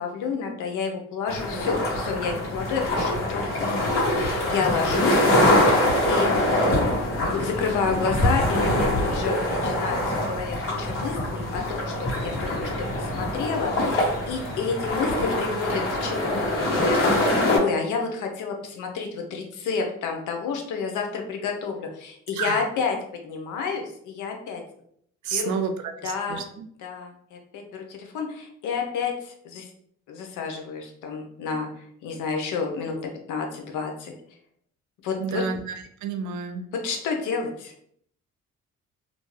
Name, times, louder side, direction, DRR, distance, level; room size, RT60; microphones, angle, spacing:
voice 1, 0.0-5.3 6.1-6.7 7.2-24.6 25.3-25.6 26.0-26.4 26.8-29.7 30.1-34.1 35.0-35.4 36.7-37.7, left 5 dB, 85° left, 3 dB, 0.6 m, -30 dB
sound 1, 1.3-17.6, left 1 dB, 45° left, 1.2 m, -24 dB
voice 2, 22.3-22.7 25.2-26.4 35.2-36.6, right 6 dB, 75° right, 5 dB, 0.5 m, -30 dB
2.6 x 2.1 x 3.1 m, 0.67 s
cardioid pair, 90°, 30 cm